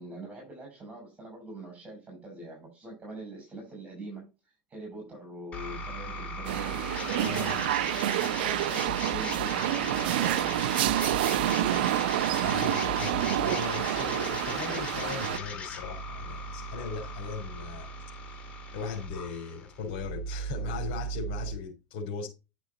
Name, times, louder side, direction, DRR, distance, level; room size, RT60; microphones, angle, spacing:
voice 1, 0.0-4.3 4.7-7.6 8.1-12.0, right 2 dB, 20° right, 6.6 m, -43 dB
sound 1, 5.5-21.5, left 1 dB, 25° left, 2.7 m, -38 dB
sound 2, 6.4-15.4, right 13 dB, 85° right, 0.5 m, -28 dB
voice 2, 7.2-7.7 12.4-17.9 18.2-18.5 18.7-22.3, left 5 dB, 60° left, 3.5 m, -38 dB
10.5 x 6.1 x 4.0 m
supercardioid pair, 125°, 5 cm